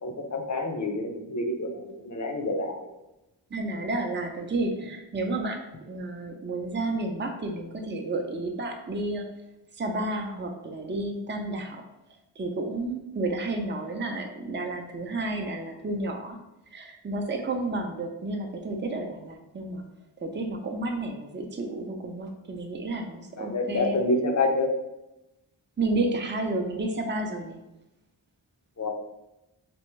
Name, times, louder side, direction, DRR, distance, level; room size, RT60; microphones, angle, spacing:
voice 1, 0.0-2.9 23.4-24.7 28.8-28.9, left 2 dB, 40° left, 3 dB, 0.6 m, -28 dB
voice 2, 3.5-5.6 5.9-9.2 9.7-11.8 12.4-16.4 16.7-19.9 20.2-24.0 25.8-27.6, right 2 dB, 25° right, 3 dB, 0.5 m, -31 dB
3.4 x 2.5 x 3.1 m, 0.94 s
wide cardioid pair, 40°, 44 cm